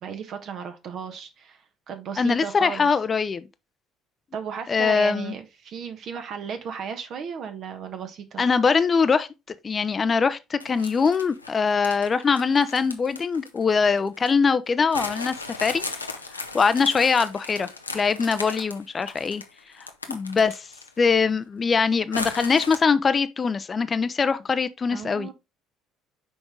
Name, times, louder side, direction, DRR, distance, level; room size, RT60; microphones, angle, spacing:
voice 1, 0.0-1.6 1.9-2.9 4.3-8.4 24.9-25.3, right 7 dB, 50° right, 1.3 m, -35 dB
voice 2, 2.2-3.4 4.7-5.3 8.4-9.3 9.6-15.8 16.5-19.4 19.8-20.7 21.0-25.3, left 5 dB, 30° left, 0.6 m, -22 dB
sound 1, 10.6-14.3 14.9-21.0 21.4-21.5 22.1-22.8, left 3 dB, 90° left, 0.6 m, -36 dB
6.1 x 4.9 x 3.7 m
figure-of-eight pair, 55°, 0 cm